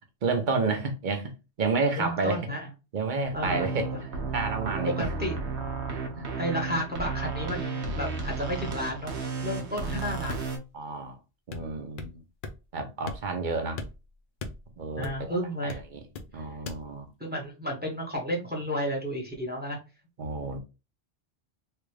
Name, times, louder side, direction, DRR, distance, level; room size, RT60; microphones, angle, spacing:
voice 1, 0.2-1.3 1.6-2.4 2.9-5.1 6.1-6.3 9.8-9.9 10.7-11.2 11.5-12.2 12.7-13.8 14.8-15.4 15.6-16.0 16.3-17.1 20.2-20.6, right 4 dB, 50° right, 0.9 m, -30 dB
voice 2, 1.9-2.7 3.3-4.0 4.9-5.4 6.4-9.1 9.4-10.5 15.0-15.8 16.3-16.4 17.2-19.8, equal, 10° right, 0.9 m, -32 dB
sound 1, 3.2-10.6, right 4 dB, 75° right, 1.0 m, -33 dB
sound 2, 10.3-10.7 11.5-12.2 12.4-12.6 13.1-13.5 13.8-15.3 15.7-16.3 16.7-16.8, left 3 dB, 55° left, 0.7 m, -39 dB
3.3 x 2.4 x 3.2 m
omnidirectional pair, 1.2 m